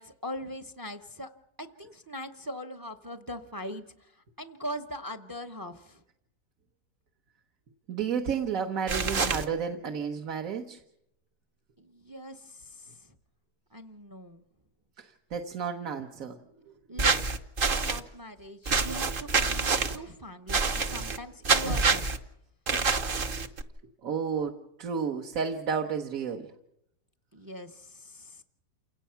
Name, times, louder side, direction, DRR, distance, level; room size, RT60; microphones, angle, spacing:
voice 1, 0.0-1.3 1.6-6.0 11.8-13.1 13.7-14.5 16.9-22.1 27.3-28.4, equal, 20° right, 8 dB, 0.6 m, -41 dB
voice 2, 7.9-10.8 15.0-16.4 16.7-16.8 24.0-26.5, right 6 dB, 55° right, 4 dB, 1.5 m, -32 dB
sound 1, 8.9-9.4 17.0-18.0 18.7-20.0 20.5-21.2 21.4-22.2 22.7-23.6, right 4 dB, 40° right, 1.0 m, -26 dB
28.5 x 17.5 x 5.7 m, 0.80 s
omnidirectional pair, 1.8 m